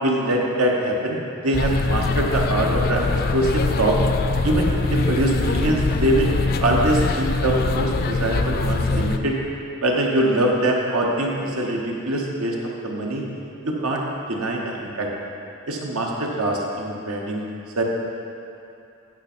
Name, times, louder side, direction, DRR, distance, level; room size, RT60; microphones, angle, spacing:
voice 1, 0.0-4.0 4.4-6.3 6.6-9.3 9.8-12.6 12.8-13.2 13.6-15.1 15.7-17.4 17.7-17.8, right 1 dB, 85° right, -1 dB, 1.2 m, -23 dB
sound 1, 1.5-9.2, left 3 dB, 45° left, 0.4 m, -23 dB
9.7 x 5.8 x 4.4 m, 2.7 s
head